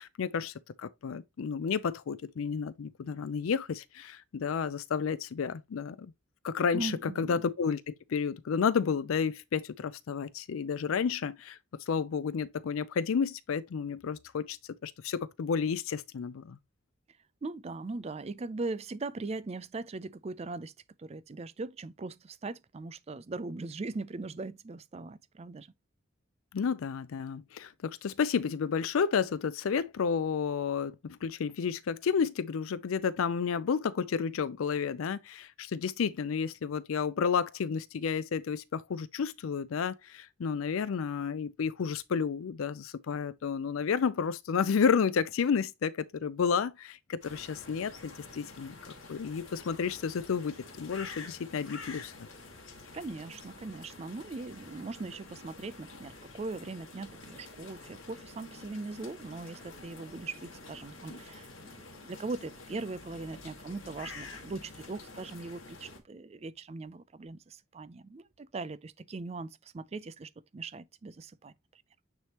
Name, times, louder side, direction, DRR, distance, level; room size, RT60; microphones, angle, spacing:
voice 1, 0.0-6.1 6.4-11.6 11.9-14.6 14.8-16.6 26.5-48.7 49.1-52.3, left 6 dB, 80° left, 0.4 m, -31 dB
voice 2, 6.7-7.4 17.4-20.7 21.0-25.7 52.9-71.8, right 3 dB, 30° right, 0.4 m, -40 dB
sound 1, 47.2-66.0, left 3 dB, 65° left, 1.7 m, -48 dB
9.3 x 3.4 x 2.9 m
head